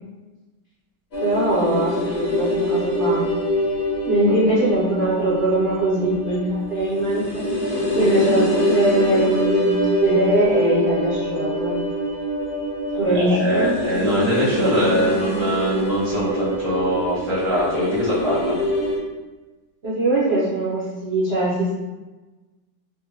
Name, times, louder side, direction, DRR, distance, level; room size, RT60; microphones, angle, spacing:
sound 1, 1.1-19.0, equal, 45° left, 1.0 m, -24 dB
voice 1, 1.2-3.2 4.1-7.4 7.9-11.7 12.9-13.7 19.8-21.8, right 1 dB, 55° right, -9 dB, 0.7 m, -21 dB
voice 2, 13.1-18.6, equal, 10° left, -9 dB, 0.7 m, -22 dB
3.6 x 2.1 x 2.8 m, 1.2 s
omnidirectional pair, 1.8 m